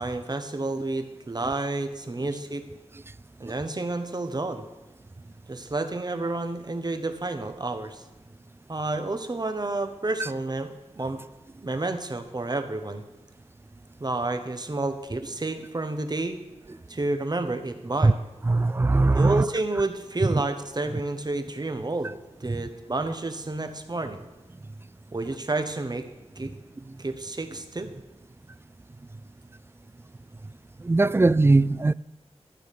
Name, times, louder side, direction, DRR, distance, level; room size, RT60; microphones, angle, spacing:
voice 1, 0.0-2.6 3.4-4.6 5.5-8.0 8.7-10.7 10.9-11.2 11.6-13.0 14.0-16.4 16.9-18.1 19.1-22.1 22.4-24.2 25.1-26.1 26.4-26.5 27.0-27.9, right 2 dB, 35° right, 1.3 m, -30 dB
voice 2, 18.4-19.5 20.2-20.4 22.5-22.7 26.9-27.0 30.8-31.9, right 2 dB, 20° right, 0.3 m, -20 dB
13.5 x 6.5 x 8.7 m
wide cardioid pair, 80°, 11 cm